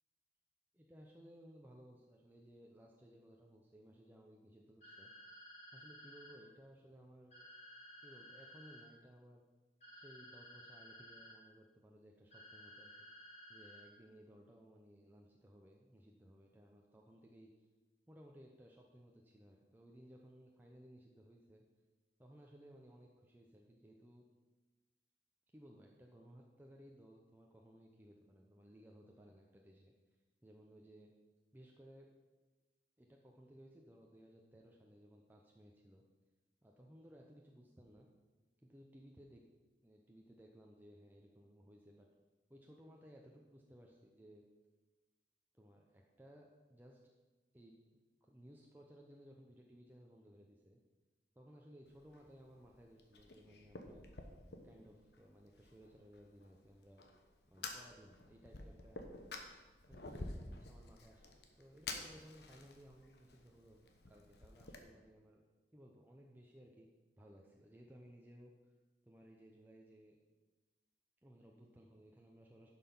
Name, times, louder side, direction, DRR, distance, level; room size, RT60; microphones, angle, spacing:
voice 1, 0.8-5.1 5.7-7.5 8.0-9.4 9.9-13.1 13.5-17.7 18.1-21.6 22.2-24.2 25.5-29.9 30.4-31.1 31.5-32.1 33.0-36.0 36.6-38.1 38.6-39.4 39.8-42.1 42.5-44.4 45.5-47.1 47.5-50.8 51.4-54.1 54.5-57.0 57.5-59.0 59.9-65.4 65.7-66.9 67.2-68.7 69.0-70.2 71.2-72.7, equal, 10° right, -1 dB, 0.7 m, -60 dB
sound 1, 4.8-6.3 7.3-8.8 9.8-11.3 12.3-13.8, equal, 40° left, 3.5 m, -56 dB
Fire, 51.9-64.8, left 3 dB, 60° left, 1.1 m, -51 dB
11.0 x 5.8 x 5.5 m, 1.2 s
head